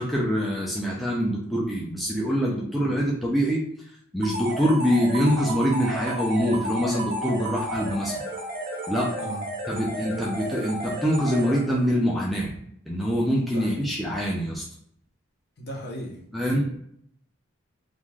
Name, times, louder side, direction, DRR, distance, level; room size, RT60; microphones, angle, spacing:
voice 1, 0.0-3.6 4.1-8.1 8.9-9.1 9.7-12.5 12.9-14.6 16.3-16.7, equal, ahead, -5 dB, 0.3 m, -24 dB
voice 2, 2.7-3.0 9.2-9.5 13.4-13.9 15.6-16.7, equal, 50° left, -2 dB, 0.8 m, -38 dB
sound 1, 4.2-12.0, right 1 dB, 45° right, 0.7 m, -33 dB
3.2 x 2.4 x 2.3 m, 0.70 s
head